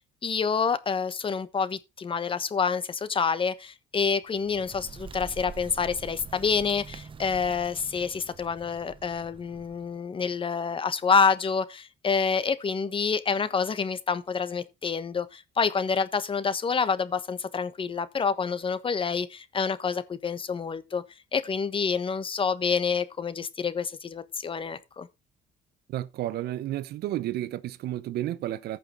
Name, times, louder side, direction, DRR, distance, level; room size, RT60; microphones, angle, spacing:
voice 1, 0.2-21.0 21.3-25.1, left 5 dB, 30° left, 1.3 m, -27 dB
Bird, 4.2-10.0, right 6 dB, 30° right, 0.8 m, -45 dB
voice 2, 25.9-28.8, right 13 dB, 70° right, 0.8 m, -32 dB
14.5 x 5.7 x 4.4 m
cardioid pair, 110°, 17 cm